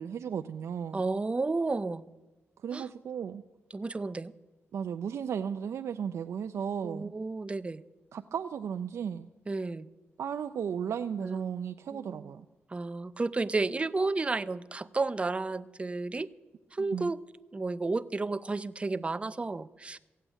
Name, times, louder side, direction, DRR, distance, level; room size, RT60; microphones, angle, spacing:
voice 1, 0.0-1.1 2.6-3.4 4.7-7.1 8.1-9.3 10.2-12.5 16.8-17.1, right 7 dB, 75° right, 7 dB, 0.5 m, -35 dB
voice 2, 0.9-2.1 2.7-2.9 3.7-4.3 6.8-7.8 9.5-9.9 11.2-11.5 11.9-12.3 12.7-16.3 16.7-17.2 17.5-20.0, right 3 dB, 25° right, 14 dB, 0.5 m, -32 dB
15.5 x 8.3 x 8.9 m, 1.1 s
wide cardioid pair, 105°, 5 cm